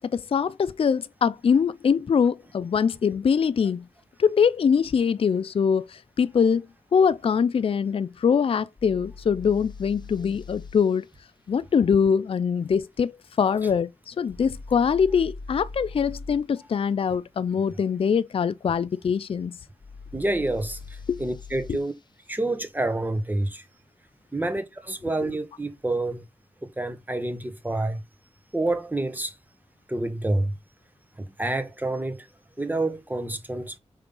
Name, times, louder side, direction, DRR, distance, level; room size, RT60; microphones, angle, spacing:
voice 1, 0.1-3.8 4.2-6.7 6.9-11.0 11.5-19.6 21.1-21.2, left 6 dB, 55° left, 0.4 m, -23 dB
sound 1, 8.8-10.8 14.3-16.4 19.8-21.9, left 4 dB, 40° left, 0.9 m, -41 dB
voice 2, 20.1-21.9 22.3-23.6 24.3-26.2 26.6-28.0 28.5-29.4 29.9-30.5 31.2-32.3 32.6-33.8, right 2 dB, 15° right, 1.4 m, -28 dB
5.5 x 3.4 x 5.3 m
cardioid pair, 65°, 11 cm